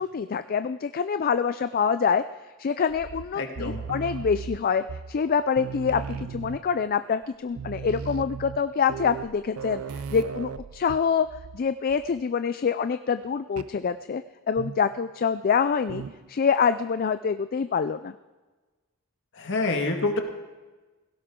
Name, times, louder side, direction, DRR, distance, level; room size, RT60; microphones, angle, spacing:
voice 1, 0.0-2.2 2.6-11.3 11.5-16.0 16.3-18.1, left 6 dB, 45° left, 11 dB, 0.4 m, -26 dB
sound 1, 2.9-5.3 5.6-6.9 7.2-7.3 7.5-11.6 11.9-12.2 13.6-13.8 14.6-15.0 15.9-16.3, right 6 dB, 75° right, 0.5 m, -37 dB
voice 2, 3.4-3.9 19.4-20.2, left 2 dB, 60° left, 3 dB, 1.8 m, -27 dB
17.0 x 16.5 x 3.7 m, 1.2 s
head